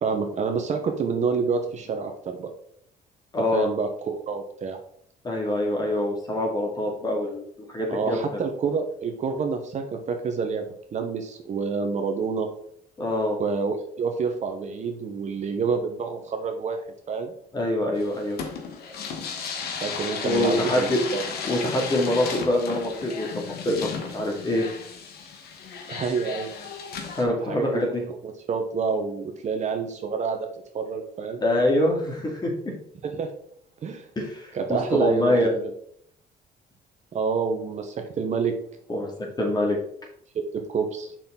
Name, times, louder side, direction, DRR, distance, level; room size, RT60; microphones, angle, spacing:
voice 1, 0.0-2.5 3.5-4.8 7.9-10.6 10.9-12.5 13.4-16.8 17.1-17.3 19.8-21.2 25.9-26.5 27.4-27.9 28.2-30.5 30.7-31.4 33.0-33.3 33.8-34.0 34.5-35.7 37.1-38.5 40.5-41.1, right 5 dB, 45° right, 5 dB, 1.0 m, -28 dB
voice 2, 3.3-3.7 5.2-8.3 13.0-13.4 17.5-18.4 20.2-21.0 21.4-24.7 27.1-28.0 31.4-32.7 34.2-35.5 38.9-39.1 39.4-39.8, left 1 dB, 25° left, 0 dB, 2.2 m, -25 dB
sound 1, 18.0-27.2, left 5 dB, 70° left, 1.4 m, -35 dB
6.6 x 5.9 x 3.8 m, 0.68 s
cardioid pair, 110°, 17 cm